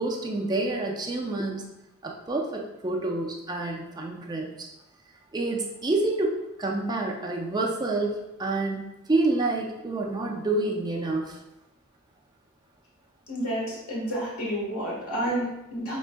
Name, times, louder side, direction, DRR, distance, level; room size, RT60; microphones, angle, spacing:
voice 1, 0.0-1.6 2.0-4.7 5.3-11.4, right 2 dB, 20° right, 0 dB, 0.5 m, -28 dB
voice 2, 13.3-16.0, right 1 dB, 85° left, -4 dB, 1.3 m, -30 dB
6.1 x 3.5 x 2.2 m, 0.92 s
head